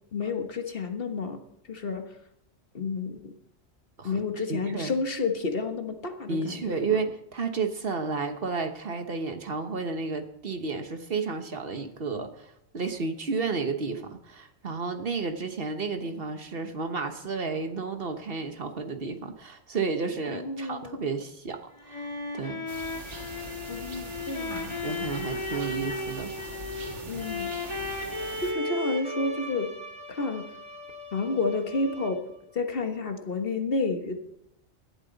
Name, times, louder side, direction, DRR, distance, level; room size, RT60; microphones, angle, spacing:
voice 1, 0.1-1.4 1.7-2.1 2.7-3.3 4.0-6.8 20.3-21.0 23.7-24.7 27.1-27.5 28.4-29.7 30.1-30.5 31.1-32.2 32.5-34.1, left 3 dB, 55° left, 6 dB, 1.6 m, -30 dB
voice 2, 4.5-4.9 6.3-22.1 22.3-22.7 24.8-26.6, right 4 dB, 55° right, 7 dB, 1.3 m, -32 dB
sound 1, 21.5-32.4, left 2 dB, 25° left, 1.7 m, -36 dB
sound 2, 22.7-28.5, right 3 dB, 85° right, 1.8 m, -42 dB
17.5 x 12.5 x 4.0 m, 0.79 s
omnidirectional pair, 1.2 m